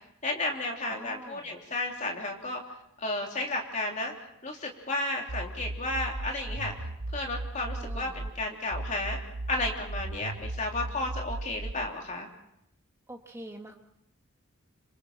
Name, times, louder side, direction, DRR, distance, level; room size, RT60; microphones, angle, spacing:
voice 1, 0.2-2.6 3.0-4.1 4.4-6.7 7.1-9.2 9.5-12.3, left 2 dB, 35° left, 1 dB, 3.3 m, -33 dB
voice 2, 0.9-1.5 7.8-8.2 13.1-13.8, right 1 dB, 10° right, 2 dB, 1.9 m, -45 dB
sound 1, 5.3-8.3 8.7-11.7, right 2 dB, 90° right, 1.1 m, -36 dB
26.5 x 26.0 x 4.4 m, 0.78 s
head